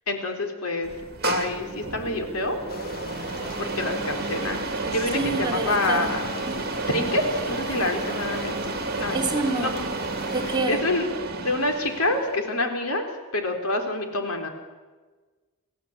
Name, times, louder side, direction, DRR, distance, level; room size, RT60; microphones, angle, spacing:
voice 1, 0.1-0.9 1.2-2.6 3.6-6.3 6.9-8.5 9.0-9.2 9.6-9.9 10.7-11.1 11.4-13.1 13.3-14.5, left 2 dB, 90° left, 4 dB, 3.7 m, -27 dB
sound 1, 0.8-12.5, right 3 dB, 50° right, 2.4 m, -31 dB
sound 2, 2.7-10.6, left 3 dB, 45° left, 1.6 m, -40 dB
voice 2, 5.1-6.2 6.5-6.6 9.1-9.8 10.3-10.9, right 3 dB, 20° right, 1 dB, 2.8 m, -27 dB
29.5 x 15.0 x 8.8 m, 1.4 s
head